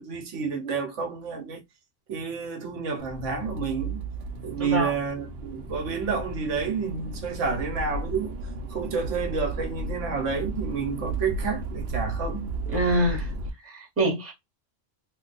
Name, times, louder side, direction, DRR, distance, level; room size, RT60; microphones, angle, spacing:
voice 1, 0.0-1.6 2.1-4.1 4.4-8.4 8.7-12.5, right 5 dB, 80° right, 1.2 m, -30 dB
Accelerating revving vroom, 3.0-13.5, right 2 dB, 60° right, 0.8 m, -34 dB
voice 2, 4.6-4.9 12.7-13.3 13.6-14.3, right 1 dB, 15° right, 1.0 m, -25 dB
2.8 x 2.3 x 3.9 m
omnidirectional pair, 1.3 m